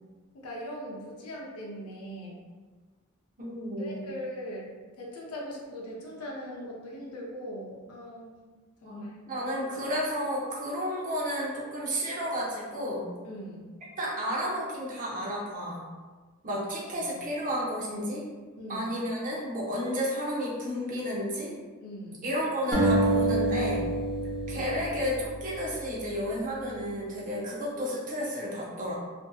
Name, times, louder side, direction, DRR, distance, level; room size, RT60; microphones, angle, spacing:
voice 1, 0.3-2.3 3.8-4.7 5.0-8.3 8.8-9.2 13.2-13.6 16.9-17.2 18.6-18.9 21.8-22.2 24.5-24.8, equal, 90° left, -3 dB, 0.5 m, -40 dB
voice 2, 3.4-4.0 8.8-9.0 9.3-13.1 14.0-15.8 16.4-18.2 18.7-21.5 22.2-23.9 24.5-28.9, equal, 40° right, -4 dB, 0.6 m, -32 dB
sound 1, 22.7-25.9, right 1 dB, ahead, 0.8 m, -27 dB
2.6 x 2.5 x 2.3 m, 1.4 s
head